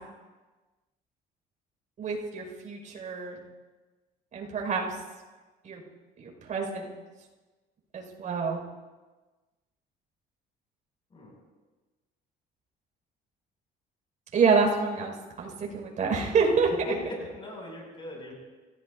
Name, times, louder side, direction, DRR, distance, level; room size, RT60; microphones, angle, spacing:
voice 1, 2.0-3.4 4.3-4.8 5.6-5.8 6.2-6.9 7.9-8.6 14.3-16.7, right 5 dB, 50° right, 0 dB, 5.8 m, -27 dB
voice 2, 16.9-18.3, left 1 dB, 30° left, -1 dB, 6.8 m, -40 dB
29.0 x 17.0 x 2.8 m, 1.2 s
cardioid pair, 110°, 17 cm